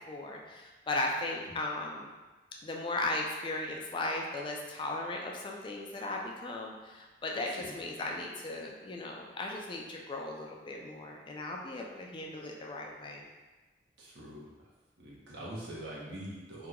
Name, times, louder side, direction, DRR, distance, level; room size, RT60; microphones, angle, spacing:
voice 1, 0.0-2.1 2.6-13.3, left 2 dB, 30° left, 0 dB, 0.3 m, -37 dB
voice 2, 7.4-7.8 14.0-14.5 15.0-16.7, right 1 dB, 70° right, -5 dB, 0.8 m, -44 dB
2.9 x 2.2 x 3.6 m, 1.2 s
head